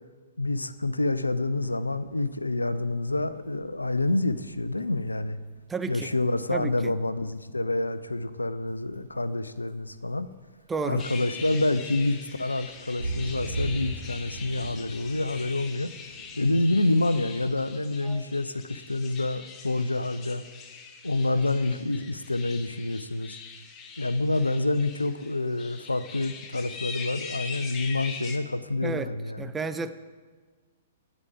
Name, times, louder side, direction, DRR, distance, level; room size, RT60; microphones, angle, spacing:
voice 1, 0.4-5.4 5.9-10.3 10.8-15.9 16.4-20.4 21.0-23.4 24.0-29.5, left 2 dB, 85° left, 14 dB, 0.4 m, -27 dB
sound 1, 1.1-17.5, right 2 dB, 85° right, 1.4 m, -41 dB
voice 2, 5.7-6.1 6.5-6.9 10.7-11.0 18.0-18.3 28.8-29.1 29.4-29.9, right 4 dB, 10° right, 10 dB, 0.4 m, -32 dB
sound 2, 11.0-28.4, left 5 dB, 25° left, 0.9 m, -42 dB
9.7 x 5.1 x 7.4 m, 1.4 s
figure-of-eight pair, 110°, 0 cm